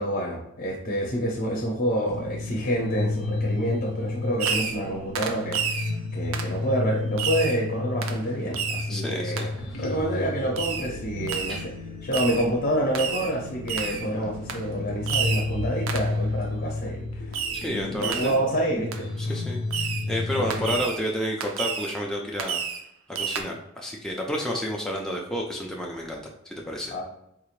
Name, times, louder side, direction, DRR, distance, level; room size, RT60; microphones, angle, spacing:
voice 1, 0.0-9.5 9.8-11.7 12.0-17.1 17.9-19.3 20.5-20.6 26.9-27.0, right 1 dB, 40° left, -1 dB, 0.7 m, -28 dB
sound 1, 2.0-20.8, left 2 dB, 90° left, 0.6 m, -32 dB
Fireworks, 4.4-4.9 5.2-5.9 6.3-6.6 7.2-7.6 8.0-8.2 8.5-8.9 9.4-9.5 10.6-10.9 11.3-11.6 12.1-12.5 13.0-13.3 13.7-14.1 14.5-14.6 15.1-15.5 15.9-16.1 17.3-17.7 18.0-18.4 18.9-19.0 19.7-20.1 20.5-21.0 21.4-22.0 22.4-22.9 23.2-23.4, right 6 dB, 80° right, 0.4 m, -30 dB
voice 2, 8.9-9.9 11.5-11.7 17.5-18.4 19.2-22.6 23.1-26.9, equal, 5° left, -2 dB, 0.3 m, -31 dB
3.6 x 2.4 x 3.1 m, 0.77 s
head